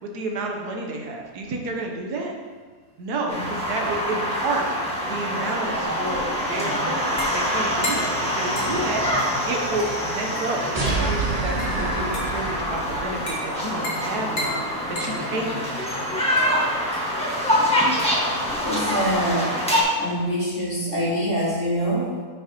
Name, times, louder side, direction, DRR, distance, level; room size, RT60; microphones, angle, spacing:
voice 1, 0.0-2.3 3.0-14.6 15.0-15.7, right 2 dB, 80° right, 1 dB, 1.5 m, -30 dB
sound 1, 3.3-19.8, equal, 5° left, 1.3 m, -25 dB
sound 2, 5.8-19.3, left 1 dB, 60° left, 2.1 m, -37 dB
sound 3, 10.7-13.3, right 3 dB, 30° right, 0.8 m, -27 dB
voice 2, 18.6-19.6 20.0-22.2, equal, 35° left, -7 dB, 2.1 m, -25 dB
9.2 x 5.9 x 2.9 m, 1.5 s
omnidirectional pair, 1.7 m